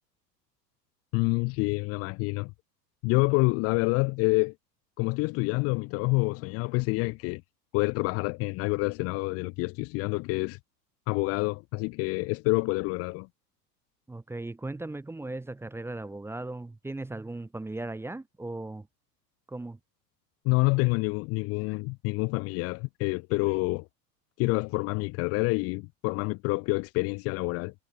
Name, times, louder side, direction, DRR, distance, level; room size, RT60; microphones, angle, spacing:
voice 1, 1.1-2.5 3.0-4.5 5.0-7.4 7.7-10.6 11.1-13.3 20.4-23.9 24.4-27.7, left 27 dB, 30° left, 0.6 m, -27 dB
voice 2, 14.1-18.9 19.5-19.8, right 2 dB, 5° right, 0.9 m, -37 dB
figure-of-eight pair, 85°, 50 cm